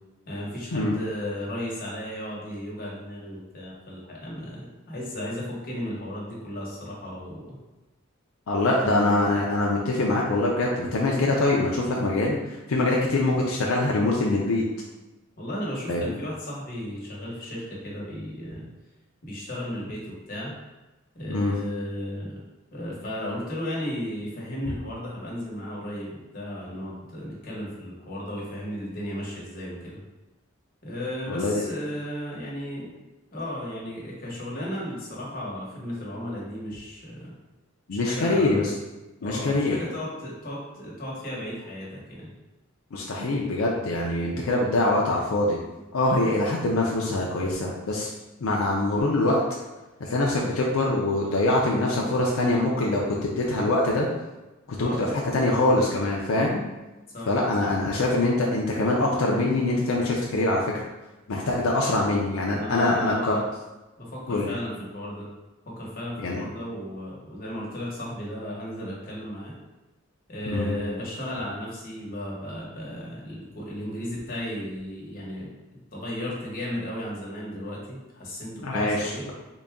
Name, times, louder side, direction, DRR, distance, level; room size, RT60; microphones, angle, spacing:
voice 1, 0.3-7.6 8.8-9.3 15.4-18.7 19.2-20.5 21.1-22.4 22.7-30.0 30.8-33.0 33.3-37.3 37.9-38.6 39.2-42.3 54.8-55.0 57.1-57.3 57.6-57.7 61.8-62.0 62.6-63.4 64.0-65.3 65.6-69.5 70.3-75.5 75.9-79.3, equal, 45° left, -5 dB, 1.1 m, -35 dB
voice 2, 8.5-14.6 15.9-16.2 21.3-21.5 31.3-31.6 37.9-38.7 39.2-39.8 42.9-45.6 45.9-48.1 48.4-49.4 50.0-54.1 54.8-56.6 57.3-60.6 61.3-63.4 64.3-64.5 66.2-66.4 70.5-70.7 78.6-79.3, left 2 dB, 80° left, -2 dB, 0.5 m, -24 dB
3.8 x 2.2 x 3.6 m, 1.1 s
head